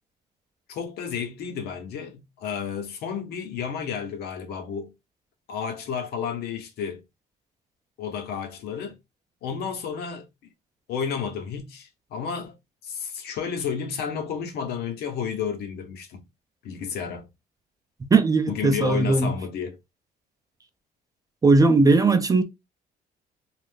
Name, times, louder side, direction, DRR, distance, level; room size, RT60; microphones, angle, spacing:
voice 1, 0.7-4.9 5.5-7.0 8.0-9.0 9.4-10.3 10.9-12.6 12.8-16.2 16.6-17.3 18.5-19.8, left 7 dB, 70° left, 0.9 m, -31 dB
voice 2, 18.1-19.4 21.4-22.4, right 3 dB, 20° right, 0.5 m, -18 dB
2.6 x 2.4 x 3.4 m
cardioid pair, 110°, 17 cm